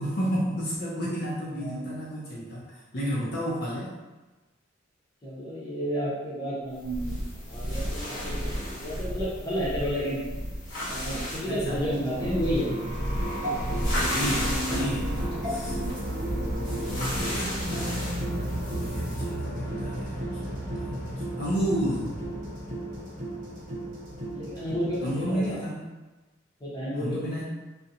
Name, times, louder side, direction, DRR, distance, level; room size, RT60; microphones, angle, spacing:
voice 1, 0.0-3.9 11.4-11.9 13.9-22.2 25.0-25.8 26.9-27.4, equal, 50° left, -6 dB, 0.5 m, -32 dB
voice 2, 1.6-1.9 5.2-7.1 7.5-10.2 10.8-12.7 15.7-16.0 24.3-25.6 26.6-27.4, equal, 20° left, -8 dB, 0.7 m, -31 dB
sound 1, 6.8-19.3, equal, 70° left, 1.0 m, -36 dB
sound 2, 6.8-17.4, equal, 15° right, 0.3 m, -35 dB
sound 3, 11.9-25.6, right 1 dB, 40° right, 0.8 m, -33 dB
2.4 x 2.0 x 2.7 m, 1.2 s
head